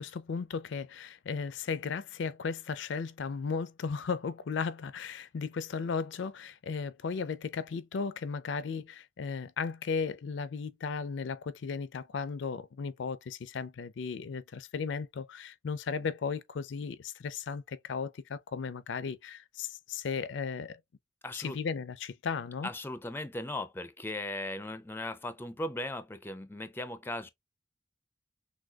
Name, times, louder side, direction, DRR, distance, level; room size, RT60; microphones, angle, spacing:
voice 1, 0.0-20.8 21.3-22.7, left 5 dB, 75° left, 0.4 m, -35 dB
voice 2, 21.2-21.6 22.6-27.3, left 1 dB, 10° left, 0.4 m, -38 dB
6.1 x 2.2 x 2.3 m
head